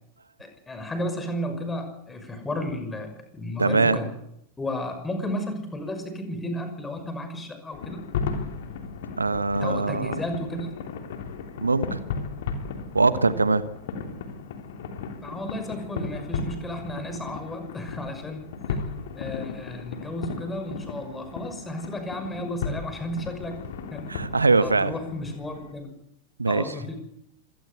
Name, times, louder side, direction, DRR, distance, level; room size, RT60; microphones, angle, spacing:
voice 1, 0.4-4.1 4.6-8.0 9.6-10.7 15.2-18.4 19.1-23.6 23.9-24.1 24.6-25.9 26.5-27.0, left 1 dB, 10° left, 8 dB, 6.0 m, -33 dB
voice 2, 3.6-4.0 9.2-10.2 11.6-12.0 12.9-13.6 24.1-24.9 26.4-26.7, right 3 dB, 80° right, 14 dB, 1.2 m, -22 dB
sound 1, 7.7-25.7, left 5 dB, 55° left, 3.4 m, -35 dB
26.0 x 19.0 x 8.3 m, 0.79 s
figure-of-eight pair, 90°, 0 cm